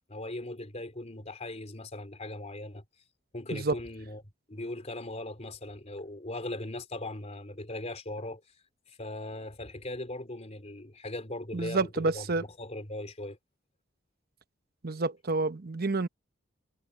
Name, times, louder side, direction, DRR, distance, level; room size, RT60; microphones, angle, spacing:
voice 1, 0.0-2.8 3.3-4.2 4.5-8.4 9.0-12.2 12.6-13.4, left 1 dB, 35° left, 3.5 m, -39 dB
voice 2, 11.5-12.4 14.8-16.1, right 3 dB, 50° right, 1.0 m, -29 dB
head